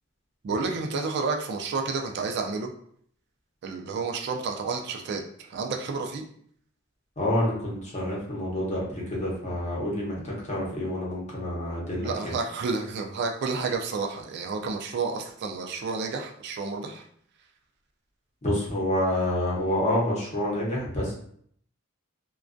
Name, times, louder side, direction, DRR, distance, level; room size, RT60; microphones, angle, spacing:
voice 1, 0.4-2.7 3.6-5.2 5.5-6.2 12.0-17.0, right 4 dB, 55° right, 3 dB, 0.3 m, -30 dB
voice 2, 7.2-12.3 18.4-21.1, left 1 dB, 35° left, -4 dB, 0.8 m, -28 dB
2.3 x 2.2 x 2.5 m, 0.63 s
head